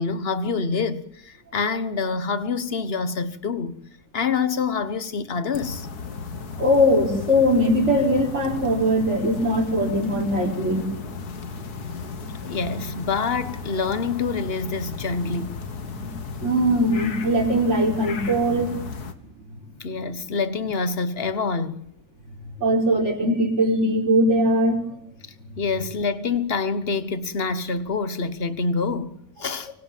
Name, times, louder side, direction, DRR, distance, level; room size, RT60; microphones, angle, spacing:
voice 1, 0.0-3.8 4.1-5.9 12.5-15.6 19.8-21.9 25.6-29.7, left 4 dB, 40° left, 1.4 m, -26 dB
sound 1, 5.5-19.1, left 4 dB, 75° left, 2.2 m, -35 dB
voice 2, 6.6-10.8 15.8-16.1 16.4-18.8 22.6-25.0, equal, 45° right, 5.3 m, -21 dB
25.5 x 25.0 x 7.5 m
omnidirectional pair, 1.7 m